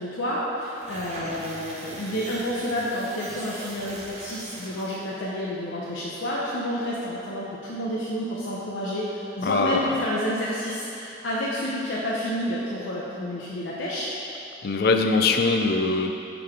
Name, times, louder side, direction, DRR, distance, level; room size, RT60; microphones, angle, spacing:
voice 1, 0.0-14.1, equal, 90° left, -6 dB, 0.7 m, -29 dB
sound 1, 0.7-5.1, right 1 dB, 35° right, 0.8 m, -41 dB
voice 2, 9.4-9.8 14.6-16.1, left 3 dB, 55° left, 5 dB, 0.4 m, -22 dB
6.7 x 3.8 x 4.7 m, 3.0 s
head